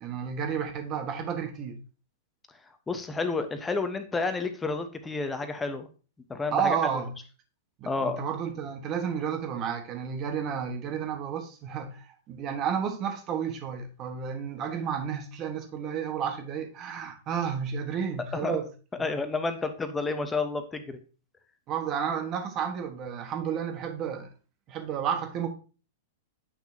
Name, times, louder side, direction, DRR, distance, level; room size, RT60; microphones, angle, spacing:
voice 1, 0.0-1.8 6.5-7.1 7.8-18.7 21.7-24.3 24.7-25.5, right 7 dB, 35° right, 1.3 m, -31 dB
voice 2, 2.9-5.9 6.3-6.8 7.8-8.2 18.3-18.6 19.0-21.0, left 3 dB, 15° left, 1.0 m, -30 dB
8.6 x 6.0 x 2.8 m
figure-of-eight pair, 100°, 0 cm